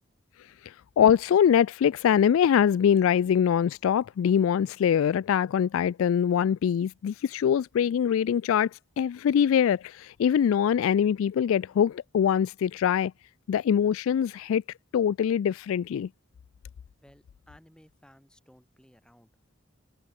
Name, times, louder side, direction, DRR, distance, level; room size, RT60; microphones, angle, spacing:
voice 1, 0.6-8.7 9.0-13.1 13.5-14.6 14.9-16.1, left 8 dB, 80° left, 0.3 m, -23 dB
voice 2, 17.0-19.3, equal, 5° left, 5.4 m, -57 dB
head